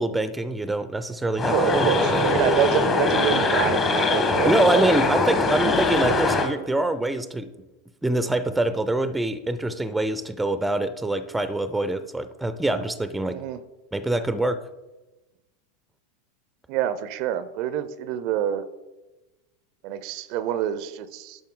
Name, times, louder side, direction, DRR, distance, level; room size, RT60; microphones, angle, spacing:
voice 1, 0.0-2.2 4.4-7.5 8.0-13.4 13.9-14.6, right 2 dB, 5° right, 12 dB, 0.5 m, -25 dB
sound 1, 1.4-6.5, left 2 dB, 30° left, 1.4 m, -22 dB
voice 2, 1.5-4.9 13.3-13.6 16.7-18.6 19.8-21.4, right 10 dB, 55° right, 14 dB, 0.5 m, -27 dB
11.0 x 5.3 x 3.8 m, 1.1 s
hypercardioid pair, 90°, 0 cm